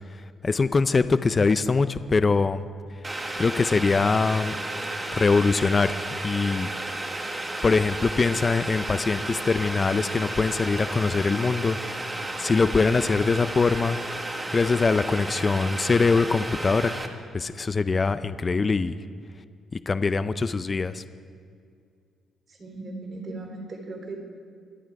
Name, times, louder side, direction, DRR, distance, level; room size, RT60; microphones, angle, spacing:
voice 1, 0.4-2.6 3.4-4.5 5.1-6.7 7.6-11.8 12.4-14.0 14.5-16.9 17.3-18.9 19.9-21.0, left 4 dB, 30° left, 13 dB, 0.6 m, -23 dB
Boiling, 3.0-17.1, right 2 dB, 20° right, 1.4 m, -33 dB
voice 2, 22.5-24.2, right 2 dB, 45° right, 2 dB, 3.9 m, -37 dB
25.5 x 9.0 x 4.8 m, 2.2 s
cardioid pair, 90°, 0 cm